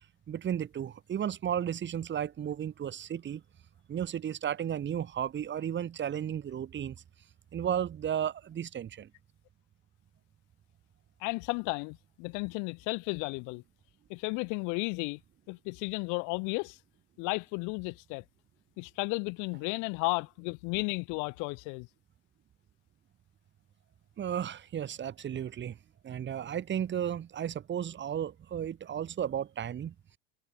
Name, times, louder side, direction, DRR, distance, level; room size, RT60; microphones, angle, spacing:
voice 1, 0.3-3.4 3.9-7.0 7.5-9.1 24.2-25.8 26.0-29.9, right 9 dB, 30° right, 4.0 m, -34 dB
voice 2, 11.2-13.6 14.1-15.2 15.5-16.8 17.2-18.2 18.8-21.9, left 32 dB, 60° left, 2.2 m, -33 dB
supercardioid pair, 105°, 35 cm